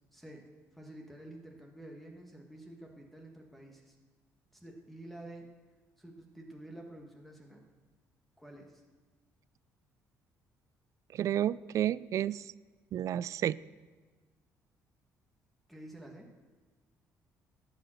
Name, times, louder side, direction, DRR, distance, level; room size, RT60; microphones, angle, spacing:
voice 1, 0.1-4.0 4.5-5.5 6.0-7.7 8.4-8.8 15.7-16.3, right 1 dB, ahead, 1 dB, 1.7 m, -49 dB
voice 2, 11.1-12.5 12.9-13.6, right 11 dB, 60° right, 20 dB, 0.3 m, -31 dB
13.0 x 8.8 x 6.4 m, 1.3 s
cardioid pair, 110°, 6 cm